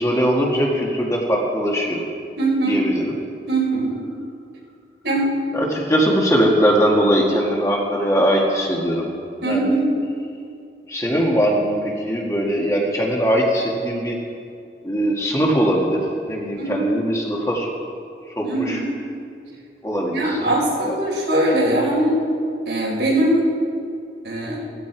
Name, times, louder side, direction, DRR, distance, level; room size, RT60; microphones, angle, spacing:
voice 1, 0.0-2.0 2.7-3.1 5.5-9.1 9.4-9.8 10.9-14.2 14.8-17.7 18.3-18.8 19.8-20.5 20.8-20.9, equal, 15° left, -2 dB, 2.0 m, -20 dB
voice 2, 2.4-2.8 3.5-4.0 5.0-5.3 9.4-9.9 16.6-16.9 18.4-18.9 20.1-22.1 22.7-23.4 24.2-24.6, right 1 dB, 85° right, -4 dB, 4.9 m, -21 dB
16.5 x 15.0 x 4.7 m, 2.4 s
head